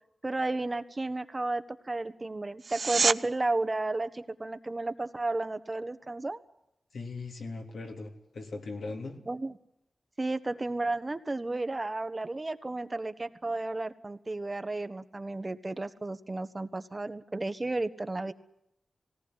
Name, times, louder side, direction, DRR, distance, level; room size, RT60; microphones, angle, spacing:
voice 1, 0.2-6.4 9.3-9.6 10.2-18.3, right 2 dB, 35° right, 10 dB, 1.5 m, -33 dB
sound 1, 2.6-3.2 14.6-14.7, right 4 dB, 65° right, 0.7 m, -27 dB
voice 2, 6.9-9.2, left 3 dB, 80° left, 2 dB, 3.3 m, -39 dB
18.5 x 18.0 x 9.7 m, 0.83 s
cardioid pair, 40°, 0 cm